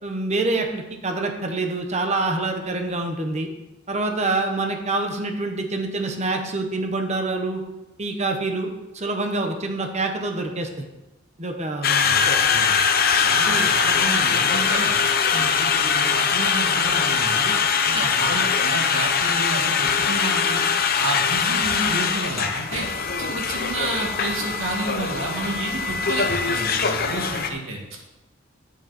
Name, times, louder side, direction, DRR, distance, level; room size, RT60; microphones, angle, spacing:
voice 1, 0.0-3.5 3.9-7.6 8.0-10.9 11.4-12.2 13.5-13.7 15.3-15.5 18.0-18.1, right 2 dB, 35° right, 4 dB, 1.1 m, -26 dB
Conversation, 11.8-27.5, left 6 dB, 50° left, 0.8 m, -22 dB
voice 2, 12.0-12.8 13.2-17.6 17.8-20.6 21.0-22.9 23.2-27.8, right 2 dB, 85° right, -1 dB, 2.4 m, -30 dB
9.4 x 8.2 x 4.4 m, 1.0 s
head